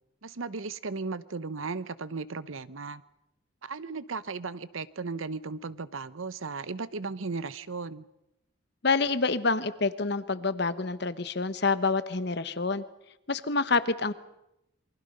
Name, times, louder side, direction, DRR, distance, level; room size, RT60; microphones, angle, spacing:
voice 1, 0.2-3.0 3.6-8.0, right 4 dB, 80° right, 15 dB, 0.9 m, -36 dB
voice 2, 8.8-12.8 13.3-14.1, left 4 dB, 55° left, 13 dB, 1.1 m, -27 dB
27.5 x 23.5 x 5.4 m, 0.86 s
head